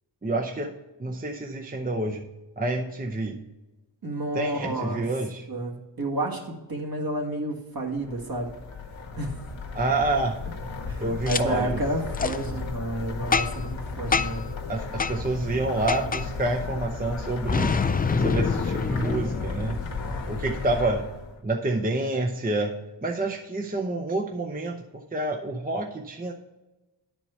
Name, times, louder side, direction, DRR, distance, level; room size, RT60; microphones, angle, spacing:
voice 1, 0.2-0.7 1.0-2.2 2.6-3.4 4.3-5.5 9.7-10.4 11.0-11.8 14.7-17.8 18.2-19.8 20.3-21.1 21.4-22.7 23.0-26.3, right 2 dB, 20° right, 2 dB, 0.7 m, -28 dB
voice 2, 4.0-5.0 5.5-8.5 9.2-9.4 10.9-14.4, right 1 dB, 50° right, 0 dB, 1.7 m, -30 dB
sound 1, 7.9-21.4, left 4 dB, 85° left, 1.2 m, -34 dB
Boom, 11.3-11.4 12.1-12.4 13.3-13.7 14.1-14.5 15.0-15.2 15.9-16.3 17.5-20.2, left 5 dB, 20° left, 0.3 m, -26 dB
9.7 x 4.5 x 5.6 m, 1.1 s
cardioid pair, 55°, 46 cm